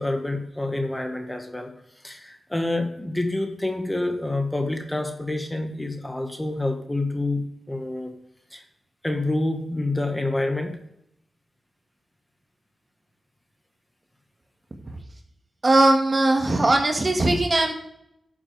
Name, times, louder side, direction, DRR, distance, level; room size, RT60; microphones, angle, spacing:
voice 1, 0.0-1.7 2.0-8.2 8.5-8.6 9.0-10.8, left 2 dB, 15° left, 5 dB, 1.5 m, -27 dB
voice 2, 15.6-17.7, right 2 dB, 35° right, 3 dB, 1.7 m, -19 dB
12.0 x 7.4 x 3.4 m, 0.79 s
cardioid pair, 70°, 0 cm